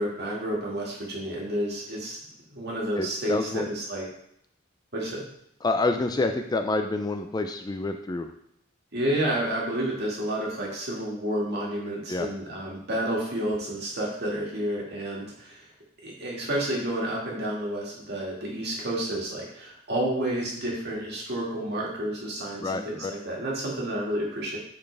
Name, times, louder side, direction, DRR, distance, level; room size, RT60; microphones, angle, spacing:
voice 1, 0.0-2.2 2.5-4.1 4.9-5.2 8.9-15.7 16.0-24.6, right 1 dB, 55° right, -3 dB, 1.9 m, -30 dB
voice 2, 3.0-3.7 5.6-8.3 12.1-12.3 22.6-23.1, left 2 dB, 20° left, 6 dB, 0.3 m, -28 dB
8.6 x 4.2 x 3.4 m, 0.73 s
head